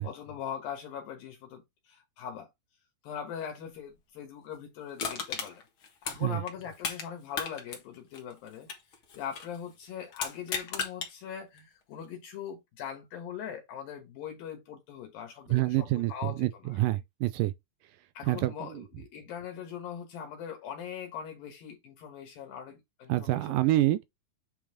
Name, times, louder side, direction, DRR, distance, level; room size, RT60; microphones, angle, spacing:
voice 1, 0.0-2.5 3.0-5.6 6.0-8.7 9.1-16.8 18.1-23.6, left 8 dB, 75° left, 3.1 m, -41 dB
Crushing, 5.0-7.1 7.3-9.6 10.1-11.1 11.6-11.7, left 6 dB, 50° left, 1.7 m, -36 dB
voice 2, 15.5-17.5 18.3-18.5 23.1-24.0, right 16 dB, 80° right, 2.0 m, -27 dB
8.7 x 3.8 x 3.7 m
omnidirectional pair, 4.3 m